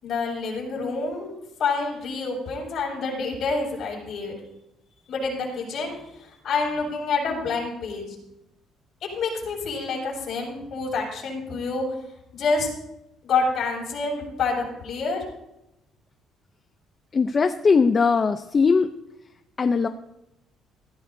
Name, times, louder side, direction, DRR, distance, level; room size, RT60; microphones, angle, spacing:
voice 1, 0.0-4.3 5.1-5.9 6.4-8.1 9.1-11.8 12.3-12.7 13.2-15.2, left 4 dB, 50° left, -2 dB, 6.7 m, -27 dB
voice 2, 17.1-18.9 19.6-19.9, left 5 dB, 25° left, 8 dB, 0.6 m, -20 dB
19.5 x 15.0 x 2.7 m, 0.87 s
cardioid pair, 155°, 0 cm